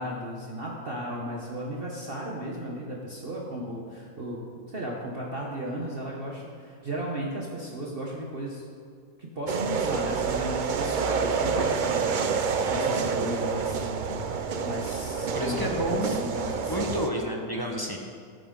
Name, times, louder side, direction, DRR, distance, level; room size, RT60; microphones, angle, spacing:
voice 1, 0.0-8.6 9.2-12.1 12.4-16.7, right 1 dB, 40° right, -3 dB, 1.3 m, -35 dB
sound 1, 9.5-17.1, right 5 dB, 60° right, 0.5 m, -28 dB
voice 2, 15.4-16.2 16.7-18.0, equal, 15° left, 0 dB, 1.0 m, -30 dB
17.0 x 9.2 x 3.8 m, 2.2 s
omnidirectional pair, 1.6 m